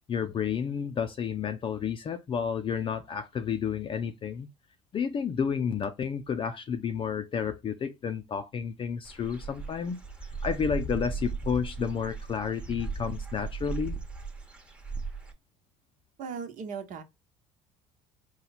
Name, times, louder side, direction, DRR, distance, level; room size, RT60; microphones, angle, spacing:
voice 1, 0.1-4.5 4.9-10.0 10.4-14.0, left 7 dB, 35° left, 0.5 m, -31 dB
Dog / Bird, 9.0-15.3, right 4 dB, 5° right, 1.0 m, -37 dB
voice 2, 16.2-17.0, right 6 dB, 60° right, 1.1 m, -37 dB
4.4 x 2.3 x 4.0 m
supercardioid pair, 85°, 15 cm